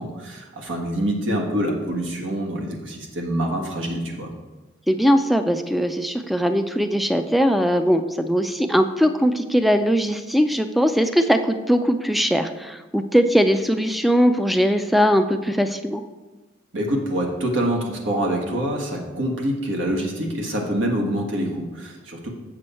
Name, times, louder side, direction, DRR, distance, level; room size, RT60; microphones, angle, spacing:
voice 1, 0.0-4.3 16.7-22.3, right 1 dB, 85° right, 0 dB, 1.6 m, -25 dB
voice 2, 4.9-16.0, equal, ahead, 8 dB, 0.4 m, -20 dB
7.7 x 7.1 x 4.3 m, 1.2 s
head